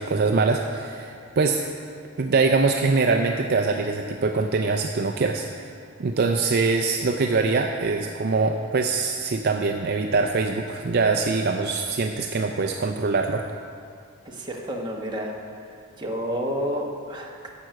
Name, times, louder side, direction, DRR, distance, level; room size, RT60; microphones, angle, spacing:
voice 1, 0.0-1.7 2.2-5.7 6.0-13.4, right 4 dB, 50° right, 4 dB, 0.4 m, -23 dB
voice 2, 14.2-15.3 16.0-17.5, equal, 20° right, -1 dB, 1.1 m, -30 dB
11.0 x 7.7 x 5.9 m, 2.4 s
head